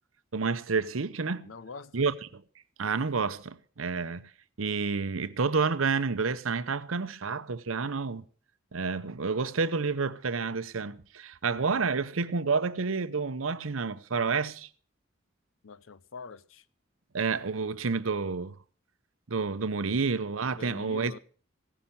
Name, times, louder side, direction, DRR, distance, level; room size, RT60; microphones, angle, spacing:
voice 1, 0.3-1.5 1.9-2.4 2.8-4.2 4.6-8.2 8.7-14.7 17.1-18.6 19.3-21.2, right 4 dB, 85° right, 0.8 m, -29 dB
voice 2, 1.4-2.0 15.6-16.6 20.5-21.2, left 4 dB, 80° left, 0.7 m, -44 dB
16.0 x 10.0 x 5.5 m
head